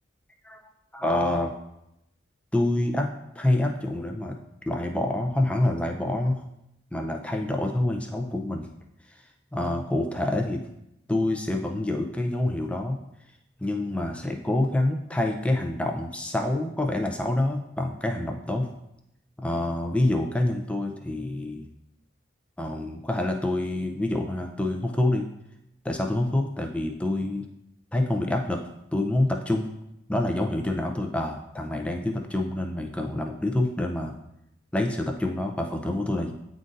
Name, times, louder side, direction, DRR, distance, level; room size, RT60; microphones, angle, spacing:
voice 1, 0.9-1.6 2.5-3.1 3.4-4.4 4.7-6.4 6.9-8.7 9.5-10.6 11.1-13.0 13.6-18.7 19.4-21.7 22.6-25.3 25.8-27.4 27.9-28.6 28.9-29.7 30.1-34.1 34.7-36.3, left 1 dB, 5° left, 3 dB, 0.5 m, -27 dB
9.5 x 3.8 x 2.6 m, 0.83 s
head